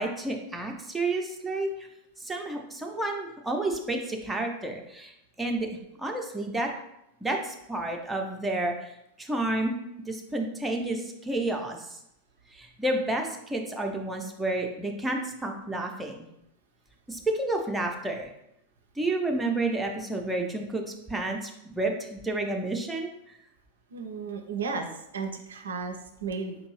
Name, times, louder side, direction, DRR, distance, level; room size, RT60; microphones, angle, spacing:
voice 1, 0.0-1.9 2.2-5.1 5.4-5.7 6.0-6.7 7.2-8.9 9.2-9.8 10.1-12.0 12.5-16.3 17.1-18.3 19.0-23.4, right 2 dB, 5° right, 1 dB, 0.5 m, -30 dB
voice 2, 23.9-24.9 25.1-26.6, right 5 dB, 65° right, 5 dB, 0.4 m, -34 dB
4.7 x 2.6 x 3.1 m, 0.82 s
figure-of-eight pair, 90°, 0 cm